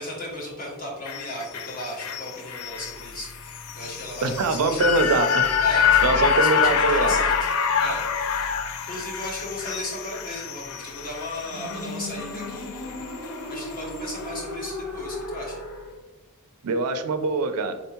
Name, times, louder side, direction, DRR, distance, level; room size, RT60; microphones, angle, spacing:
voice 1, 0.0-4.8 5.6-7.5 7.8-8.0 8.9-12.7 13.5-15.6, left 1 dB, 40° left, -2 dB, 1.1 m, -35 dB
sound 1, 1.1-13.4 13.7-13.8, left 7 dB, 70° left, 0.4 m, -26 dB
sound 2, 2.7-16.0, left 1 dB, 90° left, 0.9 m, -38 dB
voice 2, 4.2-5.5 6.0-7.2 16.6-17.8, right 3 dB, 90° right, 9 dB, 0.4 m, -23 dB
3.8 x 3.5 x 2.9 m, 1.1 s
head